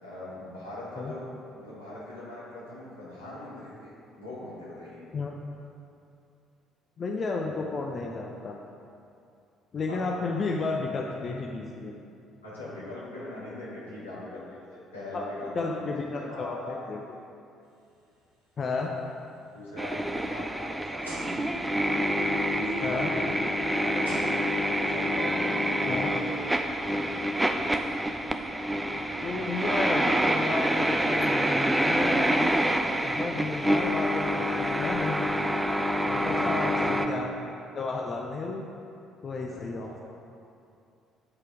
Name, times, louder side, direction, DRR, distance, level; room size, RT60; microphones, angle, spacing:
voice 1, 0.0-3.9 4.2-5.0 9.9-10.2 12.4-14.6 14.9-16.9 19.5-21.5 22.5-26.7 36.0-36.9 39.4-40.0, left 1 dB, 85° left, -9 dB, 1.8 m, -41 dB
voice 2, 7.0-8.6 9.7-11.9 15.1-15.2 15.5-17.0 18.6-18.9 22.8-23.1 25.9-26.1 29.2-32.6 33.0-35.3 36.1-37.3 37.7-38.6 39.2-40.0, left 3 dB, 40° left, 1 dB, 0.6 m, -32 dB
sound 1, 17.8-18.2 18.7-18.8 19.5-19.6 21.0-21.7 23.2-23.3 24.0-24.9, right 1 dB, 90° right, 1.3 m, -41 dB
sound 2, 19.8-37.1, equal, 10° right, 0.5 m, -27 dB
8.7 x 4.5 x 4.7 m, 2.6 s
figure-of-eight pair, 50°, 0 cm